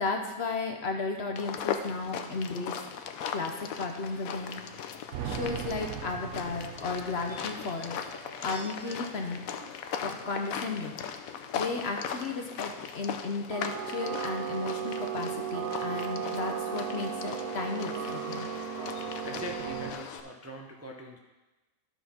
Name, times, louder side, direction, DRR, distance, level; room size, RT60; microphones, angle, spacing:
voice 1, 0.0-2.8 3.3-4.6 5.2-8.0 8.4-9.4 10.0-11.0 11.5-18.5, left 3 dB, 55° left, 3 dB, 1.0 m, -34 dB
sound 1, 1.4-20.2, left 7 dB, 75° left, 1.1 m, -39 dB
sound 2, 5.1-8.0 13.5-19.9, right 8 dB, 75° right, 1.1 m, -36 dB
sound 3, 6.6-11.6 11.8-12.8 13.0-13.1, right 1 dB, 40° right, 2.3 m, -53 dB
voice 2, 18.7-21.2, equal, 15° right, 0 dB, 0.6 m, -43 dB
12.0 x 5.8 x 4.3 m, 1.1 s
omnidirectional pair, 1.5 m